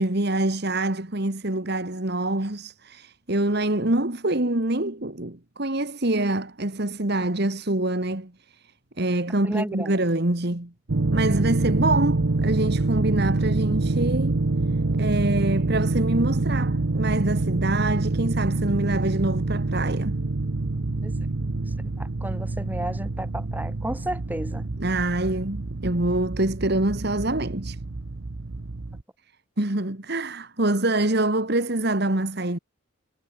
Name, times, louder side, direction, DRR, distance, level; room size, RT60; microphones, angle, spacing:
voice 1, 0.0-8.7 9.0-10.7 11.1-14.4 15.0-20.1 24.8-27.8 29.6-32.6, right 2 dB, 50° right, 1.9 m, -25 dB
voice 2, 9.4-10.0 21.0-21.2 22.0-24.6, right 1 dB, 10° right, 1.6 m, -33 dB
sound 1, 10.9-29.0, right 2 dB, 65° right, 0.8 m, -26 dB
head